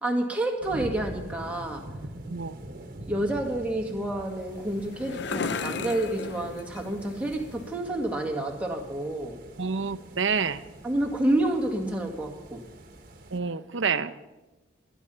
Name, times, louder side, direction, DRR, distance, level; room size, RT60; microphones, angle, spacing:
voice 1, 0.0-1.9 3.0-9.4 10.8-12.6, right 1 dB, 5° right, 0 dB, 1.9 m, -29 dB
sound 1, 0.6-13.4, right 1 dB, 45° right, 1.6 m, -44 dB
sound 2, 4.2-7.8, left 5 dB, 55° left, 0.5 m, -36 dB
voice 2, 9.6-10.6 13.3-14.1, right 5 dB, 70° right, 13 dB, 0.8 m, -28 dB
24.0 x 10.5 x 5.6 m, 1.1 s
head